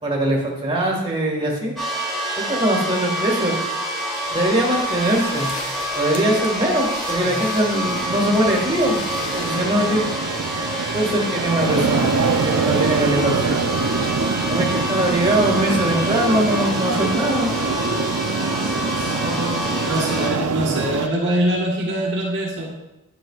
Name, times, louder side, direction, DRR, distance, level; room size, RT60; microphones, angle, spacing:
voice 1, 0.0-1.7 2.5-3.5 4.3-5.5 6.0-9.0 9.3-10.1 10.9-12.2 12.4-13.6 14.5-17.5 19.2-19.9, right 1 dB, 25° right, -2 dB, 1.8 m, -21 dB
sound 1, 1.8-20.3, equal, ahead, 2.5 m, -27 dB
sound 2, 4.2-9.6, left 3 dB, 35° left, 1.3 m, -38 dB
voice 2, 7.2-7.6 18.9-19.4 19.8-22.7, right 1 dB, 55° right, -2 dB, 1.4 m, -24 dB
sound 3, 7.8-21.1, right 5 dB, 75° right, 0.5 m, -24 dB
10.5 x 7.7 x 2.4 m, 0.92 s
head